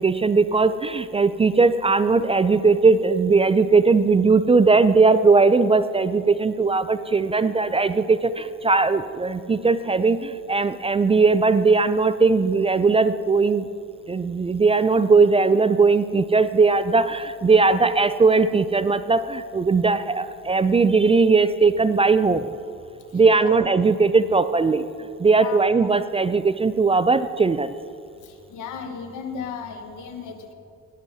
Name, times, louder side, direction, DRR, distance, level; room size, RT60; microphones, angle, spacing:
voice 1, 0.0-13.7 14.1-22.5 23.1-24.9 25.2-27.7, right 4 dB, 20° right, 13 dB, 0.3 m, -19 dB
voice 2, 28.5-30.5, left 6 dB, 80° left, 5 dB, 1.3 m, -34 dB
17.5 x 11.5 x 2.7 m, 2.4 s
cardioid pair, 90°, 30 cm